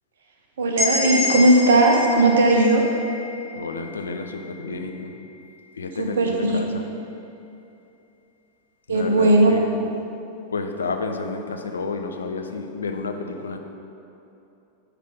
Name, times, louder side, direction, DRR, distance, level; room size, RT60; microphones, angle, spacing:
voice 1, 0.6-2.9 6.0-6.6 8.9-9.5, right 2 dB, 65° right, 2 dB, 0.8 m, -17 dB
sound 1, 0.8-4.6, left 2 dB, 45° right, 1.7 m, -28 dB
voice 2, 3.5-5.1 5.8-6.9 8.9-9.9 10.5-13.6, left 4 dB, 70° left, 5 dB, 0.5 m, -30 dB
9.6 x 3.4 x 4.9 m, 2.8 s
figure-of-eight pair, 90°, 0 cm